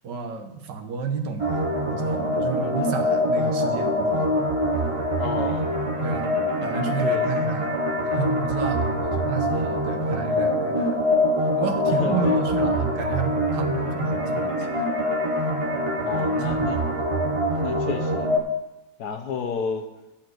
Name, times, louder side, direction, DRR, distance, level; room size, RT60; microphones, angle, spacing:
voice 1, 0.0-4.4 6.0-7.8 8.0-11.0 11.6-14.7 16.3-16.7, right 5 dB, 70° right, 6 dB, 1.6 m, -31 dB
sound 1, 1.4-18.4, equal, 35° right, 0.5 m, -24 dB
voice 2, 5.2-5.8 7.0-7.2 9.9-10.6 11.9-12.4 16.0-16.8 17.2-18.3 19.0-19.9, left 6 dB, 65° left, 5 dB, 1.2 m, -32 dB
11.5 x 4.4 x 7.9 m, 1.0 s
omnidirectional pair, 2.0 m